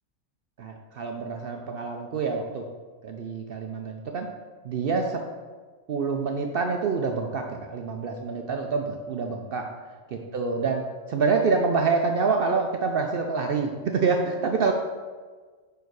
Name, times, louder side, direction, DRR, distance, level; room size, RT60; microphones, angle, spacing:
voice 1, 0.6-2.6 3.0-4.3 4.6-5.2 5.9-9.7 10.1-10.8 11.1-14.7, right 4 dB, 65° right, 3 dB, 0.6 m, -26 dB
5.4 x 4.6 x 4.7 m, 1.4 s
omnidirectional pair, 1.4 m